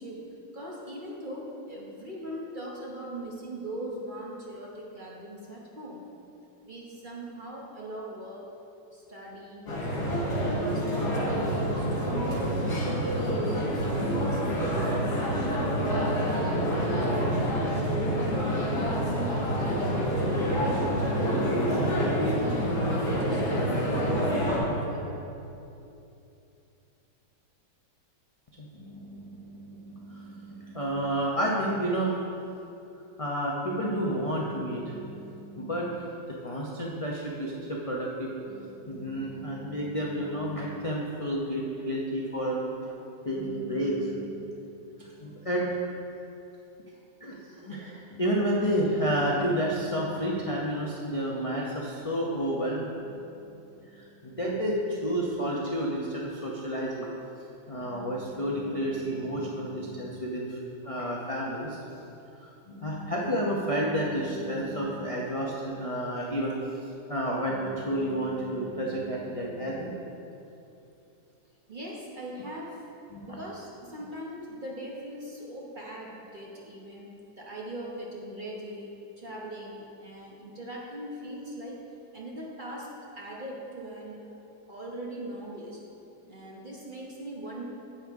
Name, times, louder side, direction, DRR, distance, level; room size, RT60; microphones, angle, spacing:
voice 1, 0.0-6.0 6.6-8.4 8.9-9.7 10.1-13.1 13.5-19.3 19.8-25.1 71.7-72.8 73.2-77.1 77.4-81.8 82.1-84.3 84.7-85.8 86.2-87.6, right 1 dB, 35° right, -3 dB, 0.9 m, -40 dB
sound 1, 9.7-24.6, equal, 65° left, 2.3 m, -27 dB
voice 2, 28.6-32.1 33.2-36.0 36.4-42.8 43.2-44.4 45.0-45.7 47.2-52.9 53.9-57.1 57.7-60.6 60.8-61.8 62.4-66.5 67.1-69.9 73.1-73.4, equal, 50° left, -4 dB, 0.4 m, -30 dB
9.8 x 8.0 x 3.5 m, 2.8 s
omnidirectional pair, 1.9 m